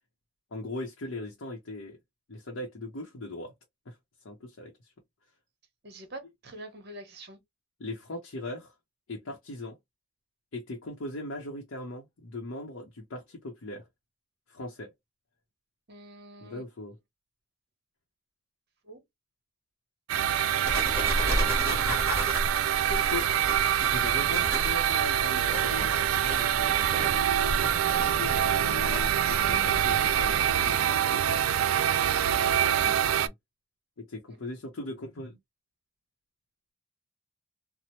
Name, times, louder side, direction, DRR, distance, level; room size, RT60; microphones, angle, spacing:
voice 1, 0.5-2.0 2.3-3.5 3.9-4.0 4.2-4.9 7.8-8.7 9.1-9.8 10.5-13.8 14.5-14.9 16.4-17.0 21.0-21.8 22.3-22.6 22.8-23.3 23.7-26.8 28.0-31.4 31.8-32.0 32.8-33.3 34.0-35.4, left 2 dB, 75° left, 0.7 m, -39 dB
voice 2, 5.8-7.4 15.9-16.6 18.8-19.0 34.3-34.4, right 1 dB, 50° right, 0.9 m, -45 dB
sound 1, 20.1-33.3, right 10 dB, 90° right, 0.3 m, -25 dB
sound 2, 20.6-30.5, equal, 15° right, 1.1 m, -34 dB
2.8 x 2.0 x 3.0 m
head